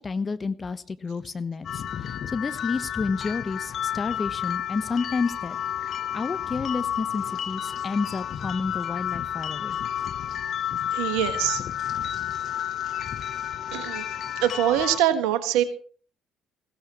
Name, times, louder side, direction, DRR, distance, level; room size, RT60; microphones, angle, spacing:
voice 1, 0.0-5.6 6.1-9.8 12.1-12.3, left 4 dB, 35° left, 12 dB, 1.1 m, -30 dB
sound 1, 1.6-15.0, left 10 dB, 55° left, 0.9 m, -31 dB
voice 2, 10.9-11.6 13.7-14.0 14.4-15.6, right 11 dB, 75° right, 10 dB, 1.5 m, -23 dB
20.5 x 16.0 x 3.1 m, 0.41 s
hypercardioid pair, 50°, 0 cm